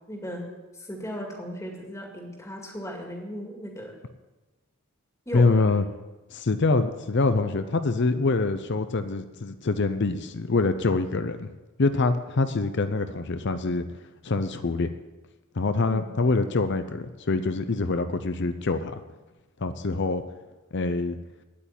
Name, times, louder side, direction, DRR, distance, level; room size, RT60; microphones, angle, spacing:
voice 1, 0.1-3.9 5.3-5.6 15.9-16.1, equal, 15° left, 1 dB, 2.2 m, -36 dB
voice 2, 5.3-5.8 6.3-11.5 11.8-13.8 14.2-14.9 15.6-18.9 19.6-20.2 20.7-21.2, left 3 dB, 55° left, 10 dB, 0.6 m, -25 dB
9.4 x 8.5 x 9.0 m, 1.2 s
head